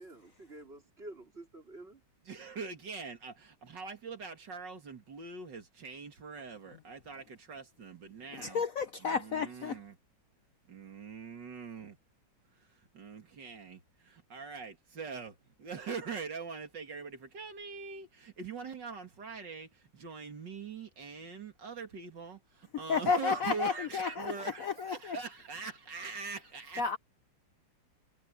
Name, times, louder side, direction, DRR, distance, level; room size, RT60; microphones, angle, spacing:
voice 1, 0.0-2.0, right 2 dB, 30° right, 4.4 m, -49 dB
voice 2, 2.3-8.6 9.0-10.0 10.7-12.0 12.9-13.8 14.3-26.8, right 5 dB, 70° right, 2.9 m, -43 dB
voice 3, 8.4-9.8 22.9-24.3 24.6-25.2 26.8-27.0, left 5 dB, 60° left, 1.0 m, -31 dB
omnidirectional pair, 2.0 m